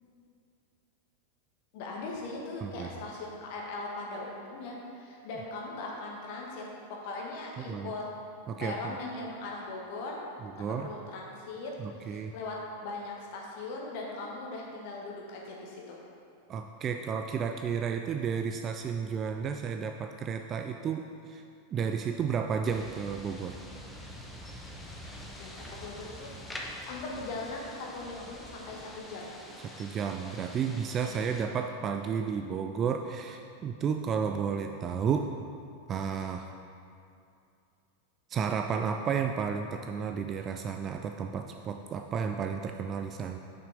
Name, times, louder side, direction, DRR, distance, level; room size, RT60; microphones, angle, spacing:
voice 1, 1.7-8.1 8.6-10.2 10.6-11.7 12.0-16.0 25.1-29.3 31.1-31.2, left 2 dB, 50° left, -2 dB, 1.4 m, -40 dB
voice 2, 7.6-7.9 8.5-9.0 10.4-10.9 11.8-12.3 16.5-21.4 21.7-23.6 29.8-35.3 35.9-36.5 38.3-43.4, right 6 dB, 30° right, 5 dB, 0.3 m, -32 dB
sound 1, 22.6-31.4, left 1 dB, 5° left, 0.9 m, -45 dB
6.6 x 5.6 x 5.2 m, 2.5 s
figure-of-eight pair, 90°, 0 cm